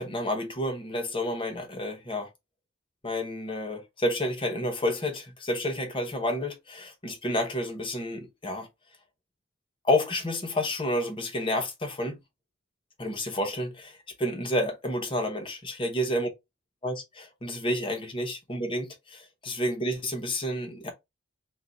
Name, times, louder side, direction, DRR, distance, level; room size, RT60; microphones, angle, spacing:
voice 1, 0.0-2.3 3.0-8.7 9.8-12.2 13.0-16.3 16.8-20.9, left 1 dB, 25° left, 1.0 m, -30 dB
3.6 x 2.4 x 4.0 m
head